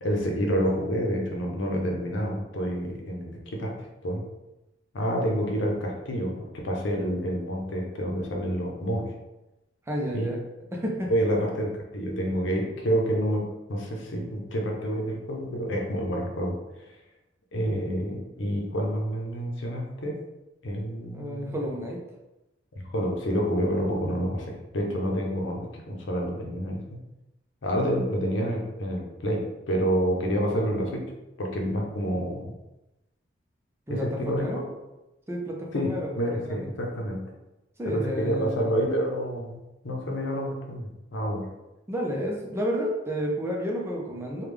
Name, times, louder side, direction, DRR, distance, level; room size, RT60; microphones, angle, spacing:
voice 1, 0.0-3.7 4.0-4.2 4.9-9.1 10.1-10.3 11.1-16.6 17.5-20.2 20.6-21.6 22.7-26.8 27.6-31.0 31.4-32.5 33.9-34.6 35.7-37.2 37.9-39.6 39.8-41.5, equal, 85° left, 0 dB, 0.7 m, -28 dB
voice 2, 9.9-10.4 10.7-11.1 21.1-22.0 33.9-34.6 35.3-36.7 37.8-38.8 41.9-44.5, equal, 15° right, -2 dB, 0.6 m, -31 dB
3.4 x 2.3 x 3.3 m, 0.99 s
head